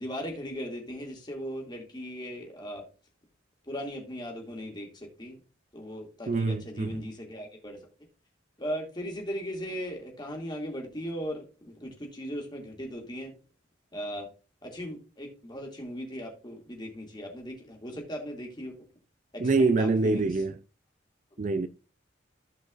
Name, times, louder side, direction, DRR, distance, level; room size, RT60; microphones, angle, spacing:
voice 1, 0.0-2.8 3.6-5.4 5.7-7.8 8.6-13.3 13.9-14.3 14.6-18.8 19.3-20.2, equal, 25° left, 2.5 m, -38 dB
voice 2, 6.3-7.0 19.4-20.5 21.4-21.7, right 3 dB, 40° right, 0.4 m, -25 dB
15.5 x 5.2 x 2.5 m
head